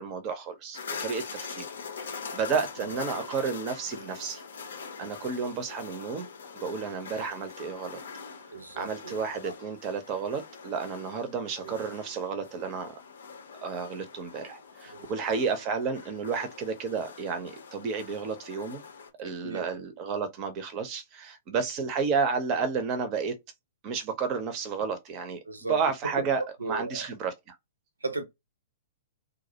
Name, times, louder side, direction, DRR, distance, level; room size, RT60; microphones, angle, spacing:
voice 1, 0.0-1.7 2.0-4.4 5.0-6.3 6.5-8.0 8.8-12.9 13.6-18.8 19.2-23.3 23.8-27.5, right 5 dB, 35° right, 0.5 m, -31 dB
sound 1, 0.7-19.1, left 5 dB, 65° left, 0.5 m, -43 dB
voice 2, 8.5-9.1 9.4-9.5 11.6-11.8 14.9-15.1 19.2-19.6 21.5-21.9 25.5-25.8 26.2-26.3 26.6-27.0 28.0-28.2, right 3 dB, 80° right, 0.5 m, -36 dB
2.3 x 2.0 x 2.7 m
figure-of-eight pair, 110°, 0 cm